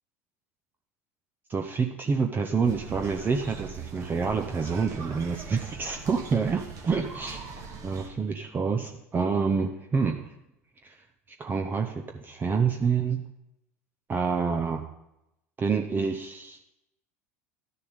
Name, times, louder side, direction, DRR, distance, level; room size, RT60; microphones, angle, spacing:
voice 1, 1.5-7.4 7.8-10.3 10.8-10.9 11.4-13.2 14.1-14.9 15.6-16.7, right 5 dB, 25° right, 4 dB, 0.7 m, -27 dB
sound 1, 2.6-8.1, right 5 dB, 45° right, 1.8 m, -41 dB
11.5 x 6.8 x 5.2 m, 0.88 s
hypercardioid pair, 75°, 8 cm